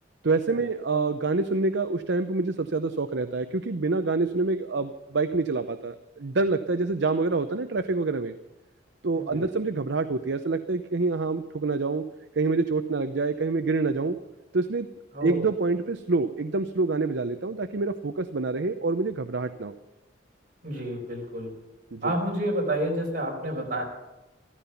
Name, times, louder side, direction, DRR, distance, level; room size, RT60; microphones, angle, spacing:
voice 1, 0.2-8.3 9.0-12.0 12.4-14.2 14.5-14.9 15.2-19.8 21.9-22.1, right 3 dB, 70° right, 9 dB, 0.7 m, -26 dB
voice 2, 20.6-21.5 22.0-23.8, right 1 dB, 50° right, 0 dB, 4.6 m, -29 dB
14.5 x 14.0 x 5.8 m, 1.0 s
head